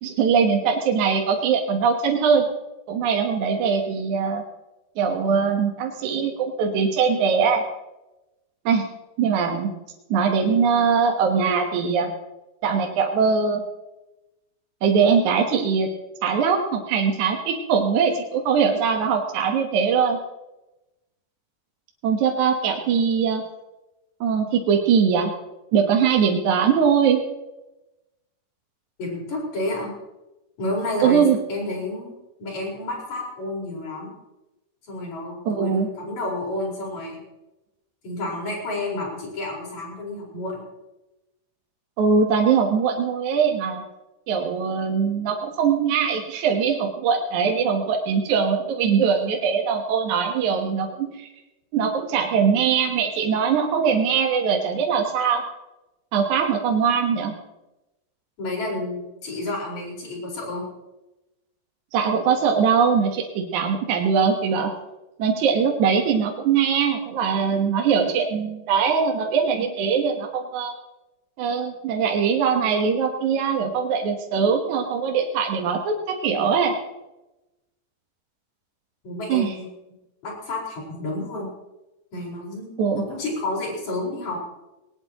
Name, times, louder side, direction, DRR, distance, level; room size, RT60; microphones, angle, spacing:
voice 1, 0.0-2.5 2.9-4.4 5.0-7.6 8.7-8.9 9.2-9.7 10.1-12.1 12.6-13.6 14.8-15.9 16.2-20.2 22.0-23.4 24.2-25.3 25.7-27.2 31.0-31.4 35.5-35.9 42.0-43.8 44.3-51.3 51.7-55.4 56.1-57.3 61.9-64.7 65.2-70.7 71.4-76.8 79.3-79.5 82.8-83.0, right 6 dB, 65° right, 2 dB, 2.5 m, -21 dB
voice 2, 29.0-29.9 30.6-31.2 31.5-34.1 34.9-37.2 38.0-40.6 58.4-60.6 79.0-79.7 80.2-81.5 82.1-84.4, left 2 dB, 55° left, -2 dB, 5.9 m, -30 dB
19.5 x 18.5 x 2.9 m, 0.99 s
omnidirectional pair, 3.9 m